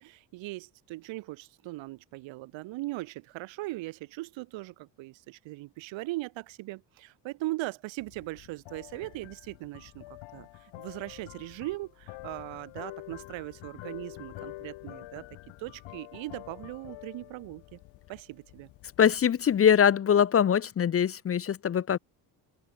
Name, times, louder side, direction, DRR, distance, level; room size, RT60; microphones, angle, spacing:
voice 1, 0.0-15.3 15.6-17.8 18.1-18.7, right 20 dB, 80° right, 3.0 m, -39 dB
sound 1, 8.0-19.6, left 19 dB, 80° left, 5.2 m, -47 dB
voice 2, 19.0-22.0, left 8 dB, 30° left, 0.8 m, -23 dB
open air
cardioid pair, 115°, 45 cm